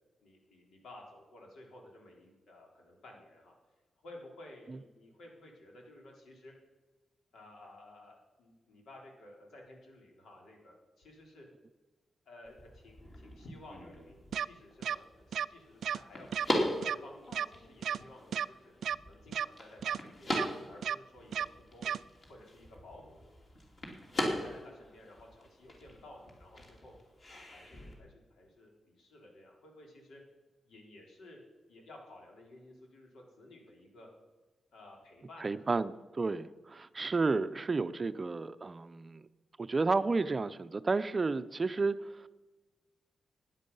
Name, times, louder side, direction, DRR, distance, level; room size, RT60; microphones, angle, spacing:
voice 1, 0.2-3.6 4.0-6.5 7.3-11.5 12.3-16.3 16.6-18.7 19.1-20.4 20.7-21.9 22.3-23.3 24.2-26.9 27.3-30.2 30.6-31.4 31.7-34.1 34.7-35.7 36.3-36.4, left 1 dB, 90° left, 0 dB, 3.6 m, -54 dB
sound 1, 12.4-27.9, left 1 dB, 35° left, 3.0 m, -40 dB
sound 2, 14.3-14.5 14.8-15.0 15.3-15.5 15.8-16.0 16.3-16.5 16.8-17.0 17.3-17.5 17.8-18.0 18.3-18.5 18.8-19.0 19.3-19.5 19.8-20.0 20.3-20.5 20.8-21.0 21.3-21.5 21.8-22.0, right 8 dB, 80° right, 0.3 m, -32 dB
voice 2, 35.4-39.2 39.6-42.3, right 3 dB, 25° right, 12 dB, 0.5 m, -32 dB
15.5 x 10.0 x 5.5 m, 1.2 s
wide cardioid pair, 170°, 0 cm